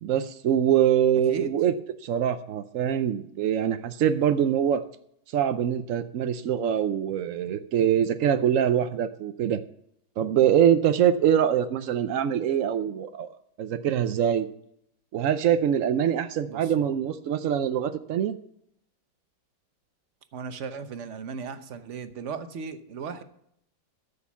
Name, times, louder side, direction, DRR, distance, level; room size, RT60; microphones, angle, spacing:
voice 1, 0.0-1.7 2.0-4.8 5.3-9.6 10.2-13.3 13.6-14.5 15.1-18.4, right 9 dB, 80° right, 10 dB, 0.7 m, -24 dB
voice 2, 16.5-17.0 20.3-23.2, right 5 dB, 50° right, 10 dB, 1.0 m, -36 dB
13.5 x 6.7 x 7.1 m, 0.72 s
omnidirectional pair, 2.1 m